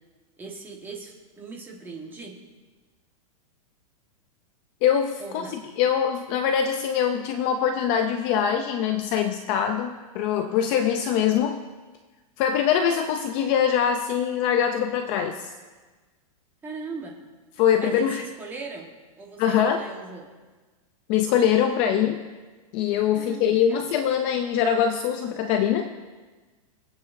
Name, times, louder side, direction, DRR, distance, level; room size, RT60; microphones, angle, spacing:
voice 1, 0.4-2.4 5.2-5.6 16.6-17.2 17.8-18.9 19.2-20.3 23.2-23.9, right 4 dB, 10° right, 0 dB, 1.4 m, -39 dB
voice 2, 4.8-11.6 12.4-15.5 17.6-18.2 19.4-19.8 21.1-22.2 22.7-25.9, left 8 dB, 30° left, 6 dB, 0.5 m, -23 dB
24.0 x 8.6 x 2.6 m, 1.3 s
supercardioid pair, 165°, 18 cm